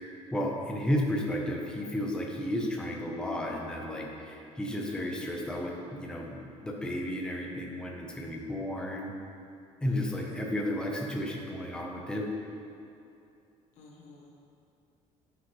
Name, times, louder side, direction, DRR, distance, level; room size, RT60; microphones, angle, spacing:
voice 1, 0.3-9.1 9.8-12.3, left 1 dB, 5° left, -1 dB, 0.6 m, -33 dB
voice 2, 9.9-10.4 13.8-14.4, left 3 dB, 65° left, -2 dB, 1.2 m, -53 dB
9.5 x 4.9 x 3.0 m, 2.6 s
cardioid pair, 180°, 13 cm